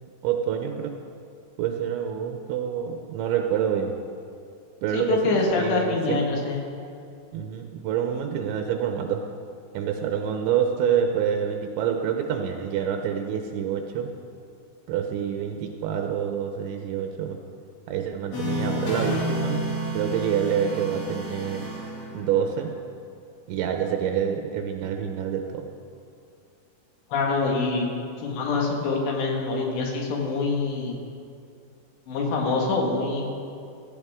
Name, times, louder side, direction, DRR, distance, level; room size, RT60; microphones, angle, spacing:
voice 1, 0.2-0.9 1.6-4.0 4.8-6.3 7.3-9.2 9.7-14.1 14.9-17.4 17.9-19.6 19.9-21.7 22.1-22.7 23.5-25.7, right 8 dB, 85° right, 4 dB, 3.1 m, -27 dB
voice 2, 4.9-6.7 27.1-27.9 28.2-31.0 32.1-33.3, left 3 dB, 75° left, 0 dB, 3.8 m, -25 dB
sound 1, 18.3-22.6, equal, 55° left, 4.1 m, -30 dB
16.5 x 14.5 x 3.6 m, 2.5 s
omnidirectional pair, 5.2 m